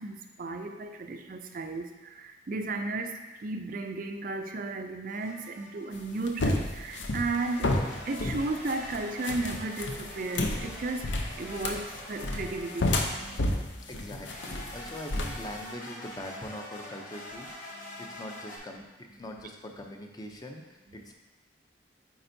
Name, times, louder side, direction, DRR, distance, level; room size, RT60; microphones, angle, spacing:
voice 1, 0.0-1.8 2.2-3.1 3.4-7.7 8.1-11.0 11.4-13.6, right 3 dB, 45° right, 5 dB, 0.4 m, -34 dB
sound 1, 5.1-6.1 7.2-13.6 14.2-18.6, left 1 dB, 45° left, 1.3 m, -45 dB
sound 2, 5.9-15.6, left 2 dB, 80° left, 0.6 m, -31 dB
voice 2, 13.9-21.1, left 1 dB, 20° left, 2 dB, 0.5 m, -43 dB
8.6 x 4.3 x 2.7 m, 1.2 s
head